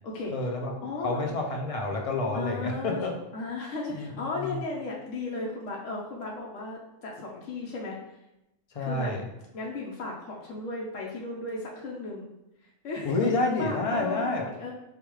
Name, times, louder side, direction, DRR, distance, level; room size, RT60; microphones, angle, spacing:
voice 1, 0.3-0.7 1.0-3.1 3.9-4.6 8.7-9.2 13.0-14.4, left 2 dB, 55° left, 1 dB, 0.4 m, -29 dB
voice 2, 0.8-1.2 2.3-3.1 3.3-8.0 8.8-9.1 9.5-12.3 12.8-13.1 13.6-14.7, left 3 dB, 85° left, -3 dB, 1.0 m, -35 dB
5.0 x 2.3 x 3.0 m, 0.92 s
omnidirectional pair, 1.3 m